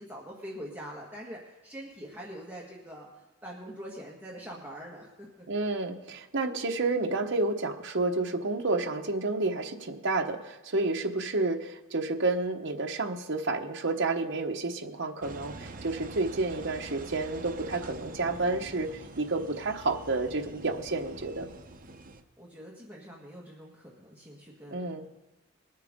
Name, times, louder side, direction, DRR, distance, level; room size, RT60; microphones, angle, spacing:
voice 1, 0.0-5.5 22.4-25.2, equal, 10° right, -4 dB, 1.6 m, -44 dB
voice 2, 5.5-21.5 24.7-25.1, right 3 dB, 55° right, 3 dB, 1.2 m, -30 dB
Engine, 15.2-22.2, right 2 dB, 40° right, 0.9 m, -45 dB
22.0 x 9.2 x 3.7 m, 1.1 s
head